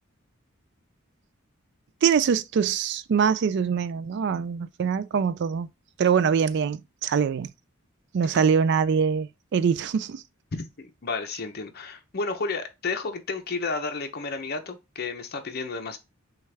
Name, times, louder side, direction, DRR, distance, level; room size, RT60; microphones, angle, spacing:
voice 1, 2.0-5.7 6.0-7.5 8.1-10.2, right 6 dB, 55° right, 0.3 m, -23 dB
voice 2, 10.5-16.0, left 4 dB, 50° left, 0.7 m, -32 dB
6.3 x 2.4 x 3.3 m
head